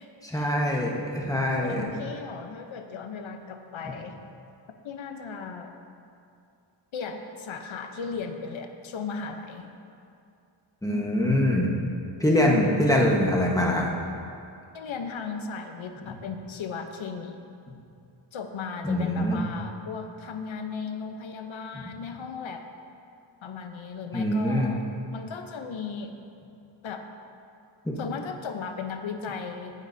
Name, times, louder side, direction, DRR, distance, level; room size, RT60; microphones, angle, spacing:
voice 1, 0.2-1.8 10.8-11.9 12.2-13.9 18.8-19.5 24.1-24.7 27.8-27.9, left 1 dB, 5° left, -2 dB, 1.2 m, -24 dB
voice 2, 1.6-4.2 4.8-5.7 6.9-9.7 10.9-11.2 12.4-12.7 14.7-17.4 18.3-22.6 23.4-24.8 25.1-26.1 26.8-27.1 28.0-29.7, left 5 dB, 85° left, 6 dB, 0.9 m, -36 dB
14.5 x 9.4 x 2.7 m, 2.5 s
wide cardioid pair, 130°, 46 cm